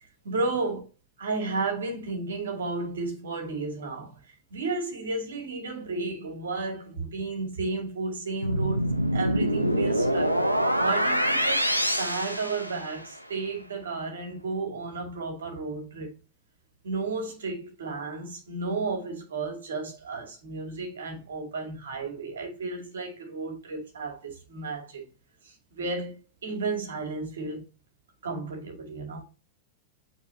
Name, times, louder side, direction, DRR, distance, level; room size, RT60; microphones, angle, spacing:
voice 1, 0.3-0.9 1.2-10.4 10.8-11.7 12.0-16.1 16.8-25.0 25.4-27.6 28.2-29.2, right 3 dB, 65° right, 2.2 m, -33 dB
sound 1, 8.4-13.2, equal, 90° right, 0.7 m, -25 dB
8.4 x 4.2 x 2.8 m
figure-of-eight pair, 90°, 0 cm